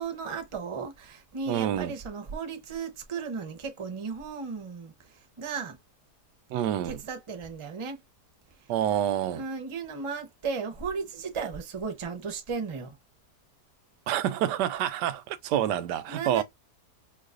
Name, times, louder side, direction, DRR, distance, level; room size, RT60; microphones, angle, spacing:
voice 1, 0.0-4.9 5.4-5.8 6.5-8.0 9.3-13.0 16.1-16.4, right 5 dB, 30° right, 0.6 m, -35 dB
voice 2, 1.5-1.9 6.5-7.0 8.7-9.4 14.1-16.4, right 11 dB, 85° right, 1.2 m, -27 dB
4.6 x 2.4 x 2.4 m
omnidirectional pair, 1.7 m